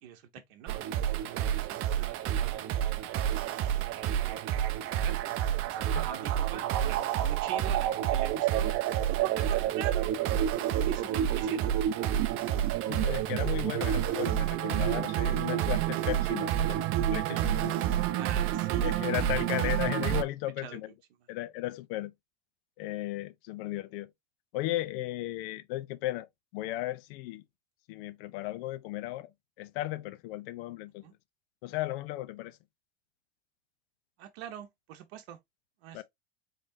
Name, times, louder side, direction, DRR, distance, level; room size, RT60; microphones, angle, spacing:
voice 1, 0.0-2.8 3.9-5.2 5.7-8.7 9.1-10.1 10.7-11.8 18.2-19.5 20.1-20.2 20.6-20.8 31.0-31.1 34.2-35.4 35.8-36.0, right 10 dB, 60° right, 0.9 m, -44 dB
sound 1, 0.7-20.2, right 11 dB, 40° right, 0.6 m, -29 dB
voice 2, 12.9-16.8 17.1-17.8 18.8-20.9 21.3-22.1 22.8-24.1 24.5-26.3 26.5-27.4 27.9-29.3 29.6-31.0 31.6-32.6 35.9-36.0, left 16 dB, 55° left, 0.6 m, -35 dB
3.7 x 3.6 x 2.6 m
hypercardioid pair, 95°, 36 cm